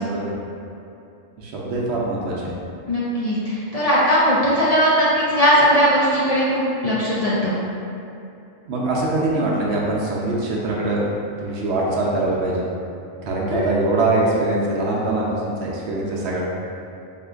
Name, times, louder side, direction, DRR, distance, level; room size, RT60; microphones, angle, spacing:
voice 1, 1.4-2.5 8.7-11.0 11.4-12.7 13.2-16.5, right 2 dB, 70° right, -4 dB, 0.8 m, -23 dB
voice 2, 2.9-7.6 13.5-13.6, equal, 65° left, -8 dB, 0.3 m, -19 dB
4.4 x 2.4 x 2.3 m, 2.7 s
omnidirectional pair, 1.3 m